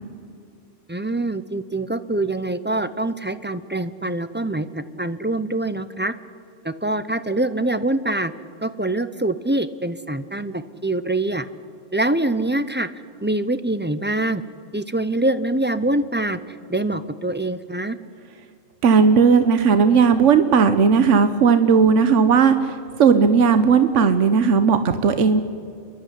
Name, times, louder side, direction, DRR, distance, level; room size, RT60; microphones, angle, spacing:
voice 1, 0.9-6.1 6.6-8.3 8.6-11.5 11.9-12.9 13.2-14.4 14.7-16.4 16.7-18.0, right 2 dB, 15° right, 12 dB, 0.5 m, -24 dB
voice 2, 18.8-25.4, right 6 dB, 80° right, 10 dB, 1.3 m, -16 dB
29.0 x 11.5 x 9.9 m, 2.3 s
omnidirectional pair, 1.2 m